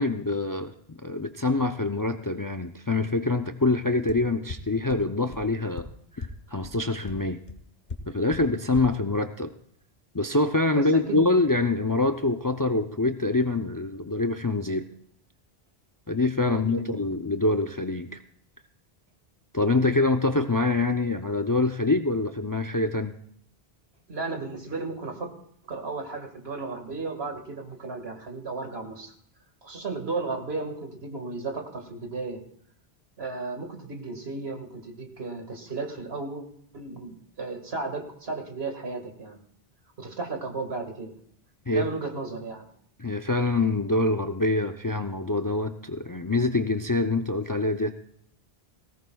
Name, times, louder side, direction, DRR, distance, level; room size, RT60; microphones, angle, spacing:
voice 1, 0.0-5.9 6.1-7.4 8.1-9.5 10.1-14.9 16.1-18.2 19.5-23.1 41.7-41.9 43.0-47.9, left 2 dB, 30° left, 7 dB, 0.4 m, -25 dB
sound 1, 4.1-4.2 4.5-4.6 4.9-5.0 5.3-5.4 5.8-5.9 6.2-6.3 6.6-6.7 7.1-7.2 7.5-7.6 7.9-8.0 8.3-8.4 8.7-8.8, left 4 dB, 45° left, 1.4 m, -35 dB
voice 2, 10.7-11.3 16.4-17.0 24.1-25.3 25.7-29.1 29.6-32.4 33.2-36.4 36.7-39.4 40.0-41.2 41.7-42.7, right 3 dB, 75° right, 4 dB, 2.1 m, -34 dB
19.0 x 17.0 x 2.3 m, 0.65 s
omnidirectional pair, 1.0 m